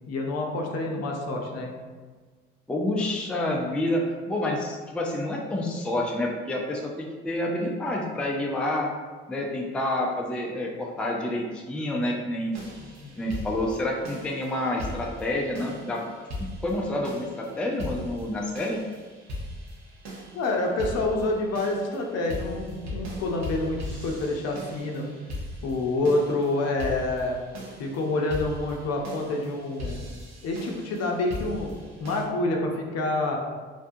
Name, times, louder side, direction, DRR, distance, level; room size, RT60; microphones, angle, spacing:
voice 1, 0.1-1.7 12.8-13.1 20.3-25.1 25.6-27.4 27.8-30.1 30.4-31.7 32.0-33.4, left 2 dB, 55° left, 1 dB, 0.6 m, -27 dB
voice 2, 2.7-8.9 9.3-12.6 13.2-16.0 16.4-18.8, left 1 dB, 5° left, -1 dB, 0.4 m, -28 dB
sound 1, 12.5-32.2, left 1 dB, 65° right, 0.8 m, -39 dB
2.6 x 2.2 x 2.5 m, 1.4 s
hypercardioid pair, 60°, 30 cm